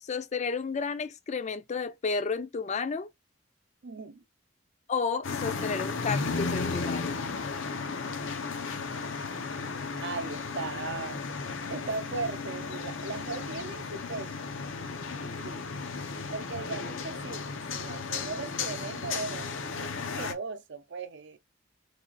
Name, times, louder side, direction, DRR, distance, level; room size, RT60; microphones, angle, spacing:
voice 1, 0.0-3.1 4.9-7.2, left 5 dB, 35° left, 0.4 m, -32 dB
voice 2, 3.8-4.2 10.0-11.3 11.7-14.5 15.3-15.6 16.3-17.4 17.7-19.5 19.8-21.4, right 4 dB, 65° right, 0.6 m, -38 dB
sound 1, 5.2-20.3, left 4 dB, 90° left, 0.8 m, -34 dB
3.3 x 2.4 x 3.9 m
head